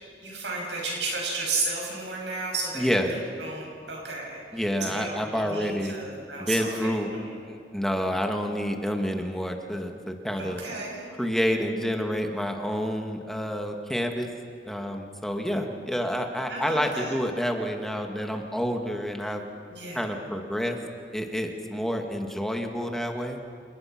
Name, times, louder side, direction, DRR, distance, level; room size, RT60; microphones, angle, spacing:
voice 1, 0.2-7.2 10.4-11.1 16.5-17.2 19.7-20.1, right 3 dB, 90° right, -2 dB, 7.4 m, -33 dB
voice 2, 2.8-3.1 4.5-5.9 6.4-7.1 7.4-10.6 11.2-14.3 14.6-19.4 19.9-20.8 21.1-23.4, equal, ahead, 3 dB, 1.9 m, -28 dB
28.0 x 21.0 x 6.0 m, 2.3 s
head